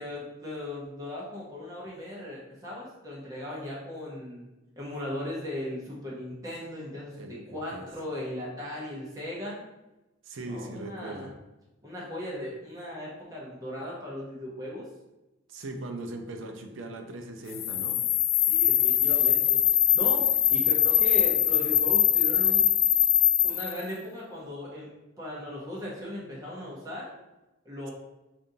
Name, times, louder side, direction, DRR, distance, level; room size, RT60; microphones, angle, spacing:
voice 1, 0.0-4.5 4.8-9.6 10.4-11.3 11.8-14.9 18.5-22.7 23.4-24.9 25.2-27.1 27.6-27.9, left 1 dB, 20° right, -6 dB, 0.8 m, -37 dB
voice 2, 7.1-7.9 10.2-11.3 15.5-18.0, right 2 dB, 70° right, 4 dB, 0.5 m, -39 dB
sound 1, 17.5-23.8, left 12 dB, 75° left, 0.3 m, -22 dB
5.2 x 2.5 x 2.7 m, 1.0 s
head